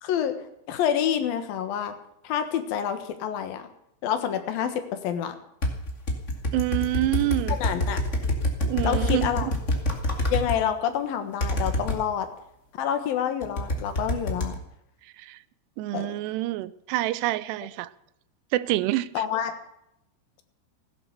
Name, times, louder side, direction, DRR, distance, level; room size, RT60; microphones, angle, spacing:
voice 1, 0.0-0.4 0.7-1.9 2.2-3.7 4.0-5.4 7.6-8.0 8.8-9.5 10.3-12.3 12.7-14.6 15.9-16.1 19.1-19.5, left 9 dB, 70° left, 3.0 m, -27 dB
sound 1, 5.6-10.6 11.4-12.0 13.4-14.5, left 1 dB, 25° left, 1.6 m, -26 dB
voice 2, 6.5-7.6 8.6-9.5 15.2-15.4 15.8-17.9 18.5-19.1, right 16 dB, 90° right, 2.8 m, -27 dB
16.0 x 11.0 x 6.8 m
omnidirectional pair, 4.7 m